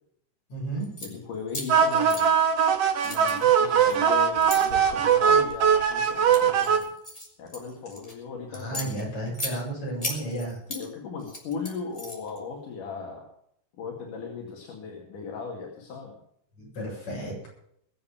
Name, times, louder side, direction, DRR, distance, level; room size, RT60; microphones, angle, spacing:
voice 1, 0.5-0.9 8.5-10.6 16.6-17.5, right 1 dB, 60° left, -3 dB, 8.9 m, -33 dB
sound 1, 0.8-1.1 1.5-2.7 3.0-4.6 5.3-5.6 6.1-8.1 8.5-9.5 10.0-10.8 11.2-12.4, left 1 dB, 10° left, 3.5 m, -36 dB
voice 2, 1.0-2.4 3.0-6.9 7.4-9.3 10.7-13.3 13.8-16.2, left 5 dB, 80° left, -1 dB, 3.7 m, -38 dB
sound 2, 1.7-6.8, right 7 dB, 60° right, 2.2 m, -21 dB
21.5 x 7.4 x 7.2 m, 0.70 s
omnidirectional pair, 3.6 m